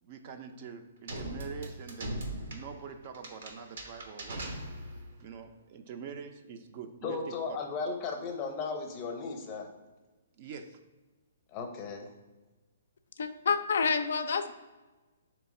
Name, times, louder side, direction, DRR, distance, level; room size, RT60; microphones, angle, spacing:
voice 1, 0.0-2.2 2.5-4.6 4.9-7.6 10.3-10.8, right 6 dB, 40° right, 7 dB, 0.4 m, -45 dB
sound 1, 1.1-5.2, right 1 dB, 70° right, 0.7 m, -40 dB
voice 2, 7.0-9.7 11.5-12.1, left 4 dB, 30° left, 3 dB, 0.6 m, -36 dB
voice 3, 13.2-14.5, left 5 dB, 75° left, 9 dB, 0.3 m, -28 dB
3.5 x 3.1 x 4.1 m, 1.2 s
hypercardioid pair, 150°, 0 cm